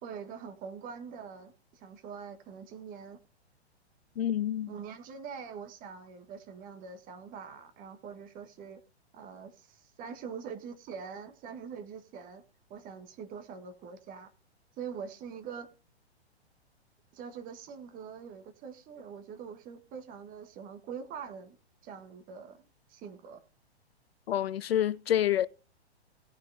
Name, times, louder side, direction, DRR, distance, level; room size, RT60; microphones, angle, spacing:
voice 1, 0.0-3.2 4.7-8.8 9.1-12.4 12.7-14.3 14.8-15.7 17.1-21.6 21.8-23.4, right 6 dB, 25° right, 1.5 m, -44 dB
voice 2, 4.2-4.7 24.3-25.5, left 11 dB, 65° left, 0.5 m, -28 dB
17.5 x 9.5 x 2.7 m
figure-of-eight pair, 115°, 33 cm